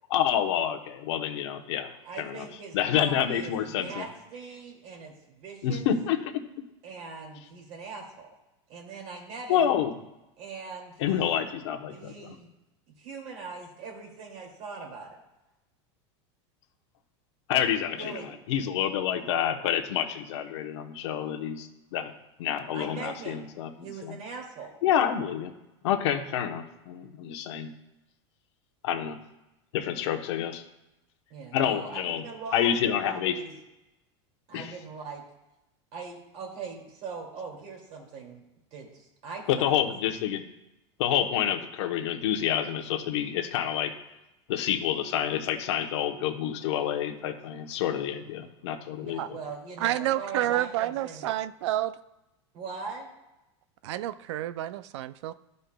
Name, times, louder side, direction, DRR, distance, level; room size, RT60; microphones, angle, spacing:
voice 1, 0.1-1.9 2.2-2.4 2.7-4.1 5.6-6.2 9.5-9.9 11.0-12.4 17.5-22.1 22.4-24.1 24.8-25.5 25.8-27.7 28.8-29.2 29.7-30.6 31.5-32.2 32.5-33.4 34.5-34.7 39.5-40.5 41.0-43.9 44.5-49.4, left 10 dB, 75° left, 5 dB, 1.0 m, -28 dB
voice 2, 2.0-5.8 6.8-8.3 8.7-9.8 10.4-11.5 11.9-12.5 13.0-15.2 17.9-18.4 22.7-23.5 23.8-24.8 31.3-33.5 34.5-35.2 35.9-38.4 38.7-39.8 49.0-51.2 52.5-53.1, right 4 dB, 50° right, 0 dB, 2.5 m, -41 dB
voice 3, 49.8-52.0 53.8-55.3, right 13 dB, 75° right, 15 dB, 0.4 m, -29 dB
12.0 x 5.3 x 2.3 m, 0.95 s
supercardioid pair, 125°, 15 cm